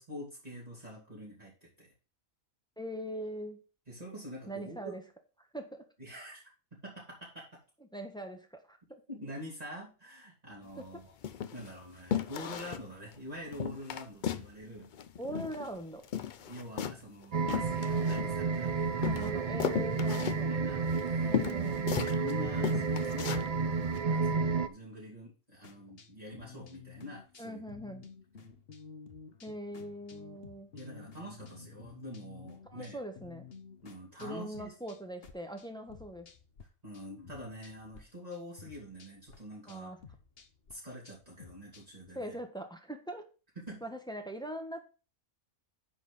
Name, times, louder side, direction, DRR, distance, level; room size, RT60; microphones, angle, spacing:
voice 1, 0.0-1.9 3.9-5.0 6.0-6.4 6.8-7.5 9.1-11.1 11.5-14.9 16.4-19.3 19.6-21.7 22.0-23.5 24.0-27.6 30.7-33.0 33.8-34.7 36.8-39.9 40.7-42.4 43.6-43.8, equal, 25° right, -5 dB, 3.0 m, -46 dB
voice 2, 2.8-3.6 4.5-5.0 5.5-5.8 7.9-9.0 10.8-11.0 15.2-16.0 19.1-20.5 21.2-21.9 27.4-28.1 29.4-30.7 32.7-33.5 34.2-36.3 39.6-40.0 42.1-43.2 43.8-44.8, equal, 5° left, 4 dB, 1.2 m, -41 dB
sound 1, 10.6-10.8 11.2-11.7 12.1-12.9 13.1-13.2 13.5-14.5 14.8-15.8 16.0-18.6 19.0-22.3 22.6-23.5 23.9-24.0, left 9 dB, 65° left, 0.4 m, -36 dB
sound 2, 17.3-24.7, right 4 dB, 55° right, 0.4 m, -31 dB
sound 3, 25.6-36.7 36.9-38.0 38.3-42.1, left 5 dB, 45° left, 1.2 m, -53 dB
10.0 x 4.4 x 5.6 m, 0.34 s
omnidirectional pair, 1.5 m